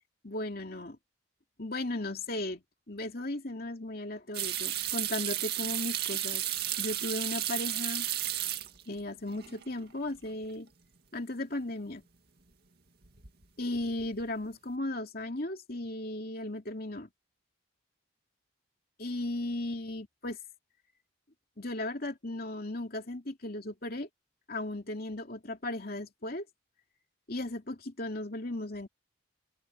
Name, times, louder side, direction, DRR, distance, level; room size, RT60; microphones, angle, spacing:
voice 1, 0.2-1.0 1.6-6.5 6.8-8.1 8.9-10.7 11.1-12.0 13.6-17.1 19.0-20.4 21.6-24.1 24.5-26.5 27.3-28.9, left 1 dB, 50° left, 2.9 m, -36 dB
sound 1, 4.3-9.0 9.3-9.9 10.3-10.4 13.0-13.4 13.7-14.3, right 12 dB, 50° right, 2.3 m, -33 dB
open air
head